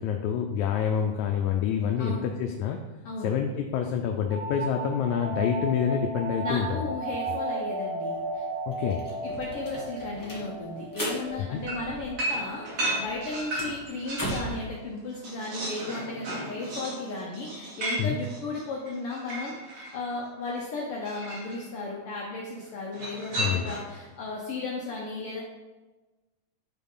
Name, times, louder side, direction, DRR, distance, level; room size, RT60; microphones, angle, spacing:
voice 1, 0.0-2.8 3.2-6.9 7.3-7.4 8.7-9.0 11.5-11.6 18.0-18.2 23.4-23.7, left 8 dB, 85° left, 3 dB, 2.0 m, -27 dB
voice 2, 2.0-2.3 3.0-3.3 6.4-8.4 9.2-25.4, left 2 dB, 60° left, -3 dB, 1.7 m, -35 dB
sound 1, 4.3-13.7, right 2 dB, 60° right, 2.7 m, -35 dB
sound 2, 8.2-8.3 8.5-12.4 12.7-14.6, right 1 dB, 10° left, 1.5 m, -38 dB
sound 3, 11.7-14.6 14.9-20.0 21.0-21.6 22.9-24.0, right 1 dB, 75° right, 3.5 m, -34 dB
10.5 x 3.8 x 5.5 m, 1.2 s
omnidirectional pair, 3.3 m